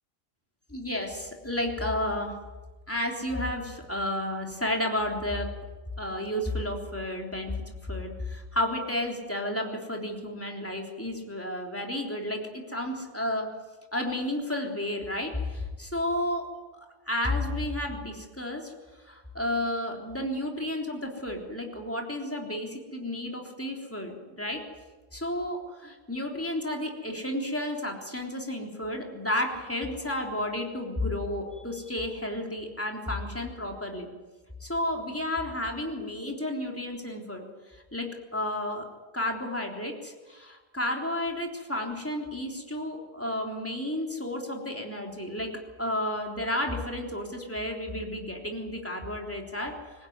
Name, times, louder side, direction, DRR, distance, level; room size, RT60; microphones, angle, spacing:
voice 1, 0.7-2.3 2.9-5.5 6.0-7.5 7.8-13.5 13.9-16.5 17.1-18.7 19.1-24.6 25.1-34.1 34.6-37.5 37.9-38.9 39.1-45.5 45.8-49.8, left 1 dB, 10° left, 1 dB, 3.6 m, -32 dB
25.5 x 16.5 x 9.6 m, 1.2 s
omnidirectional pair, 1.1 m